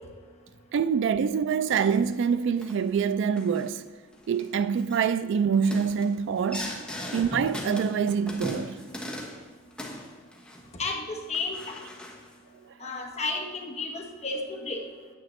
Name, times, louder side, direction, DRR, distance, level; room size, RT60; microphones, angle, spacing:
voice 1, 0.7-3.8 4.3-6.7 7.1-8.8, right 6 dB, 60° right, 0.3 m, -25 dB
sound 1, 1.7-2.1 2.6-2.8 3.4-3.7 4.1-4.4 4.8-5.1 5.5-9.4 9.7-10.8 11.3-12.3, left 1 dB, 5° left, 1.1 m, -39 dB
voice 2, 10.8-11.8 12.8-14.8, left 3 dB, 30° left, 1.1 m, -32 dB
9.3 x 9.3 x 3.2 m
head